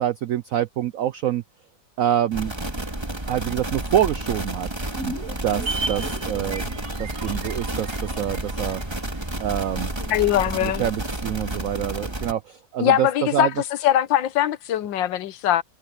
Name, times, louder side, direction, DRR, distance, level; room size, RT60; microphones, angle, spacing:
voice 1, 0.0-1.4 2.0-2.5 3.3-4.7 5.4-5.6 5.9-6.7 7.0-7.9 8.2-8.8 9.4-9.9 10.6-13.1 13.3-13.5, right 11 dB, 80° right, 0.7 m, -25 dB
sound 1, 2.3-12.3, right 1 dB, 15° right, 2.0 m, -30 dB
sound 2, 4.9-9.4 9.7-9.8, right 3 dB, 45° right, 3.0 m, -34 dB
voice 2, 10.0-10.9 12.8-13.5 13.8-15.6, left 12 dB, 75° left, 1.5 m, -21 dB
omnidirectional pair, 2.0 m